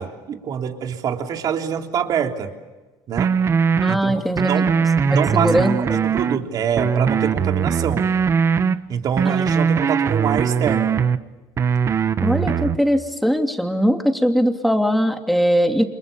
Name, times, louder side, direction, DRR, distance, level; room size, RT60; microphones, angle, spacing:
voice 1, 0.0-2.5 3.1-3.3 3.9-4.7 5.1-8.1 8.9-11.0, right 7 dB, 50° right, 4 dB, 3.3 m, -25 dB
sound 1, 3.2-4.0 4.4-6.4 6.8-8.8 9.2-11.2 11.6-12.8, right 6 dB, 35° right, 1.2 m, -20 dB
voice 2, 3.8-4.5 5.0-6.1 9.3-9.4 12.2-15.8, equal, ahead, 4 dB, 2.9 m, -20 dB
30.0 x 27.0 x 7.1 m, 1.2 s
cardioid pair, 130°, 9 cm